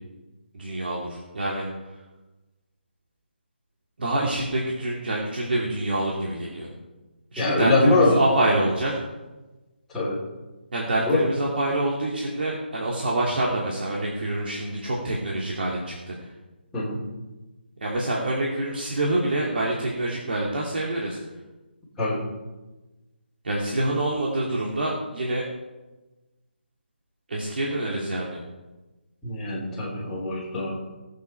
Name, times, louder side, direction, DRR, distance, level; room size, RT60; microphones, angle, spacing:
voice 1, 0.5-1.7 4.0-6.7 7.3-8.9 10.7-16.1 17.8-21.2 23.4-25.4 27.3-28.4, right 1 dB, 65° right, -3 dB, 2.7 m, -26 dB
voice 2, 7.4-8.2 9.9-10.2 11.1-11.3 16.7-17.0 22.0-22.2 29.2-30.7, left 2 dB, 5° left, -8 dB, 3.7 m, -23 dB
18.0 x 8.3 x 4.6 m, 1.1 s
figure-of-eight pair, 160°, 6 cm